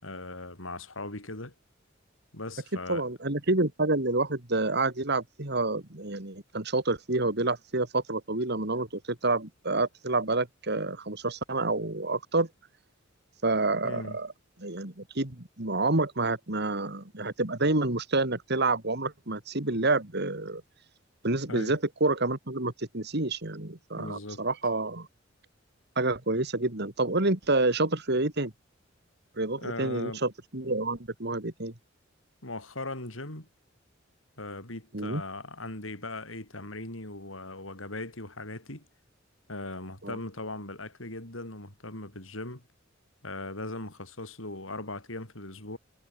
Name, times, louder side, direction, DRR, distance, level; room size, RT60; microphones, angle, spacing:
voice 1, 0.0-1.5 2.3-3.0 13.8-14.2 21.5-21.8 24.0-24.5 29.6-30.2 32.4-33.5 34.4-38.9 39.5-42.6 43.2-45.8, left 2 dB, 85° left, 5.7 m, -39 dB
voice 2, 2.9-12.5 13.4-14.3 14.6-20.6 21.2-25.1 26.0-28.5 29.4-31.7 34.9-35.2 40.0-40.2, right 2 dB, 55° right, 3.1 m, -28 dB
head